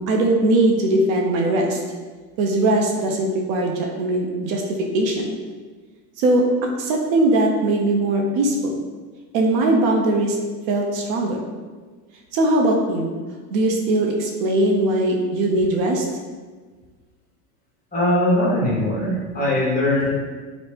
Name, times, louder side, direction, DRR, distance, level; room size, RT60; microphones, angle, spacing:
voice 1, 0.0-1.8 2.4-4.6 4.9-5.3 6.2-8.7 9.3-10.4 10.7-11.4 12.3-13.1 13.5-16.1, right 1 dB, 60° right, 0 dB, 0.6 m, -20 dB
voice 2, 17.9-20.1, left 1 dB, 20° left, -6 dB, 0.9 m, -20 dB
3.0 x 2.0 x 3.1 m, 1.4 s
supercardioid pair, 115°, 46 cm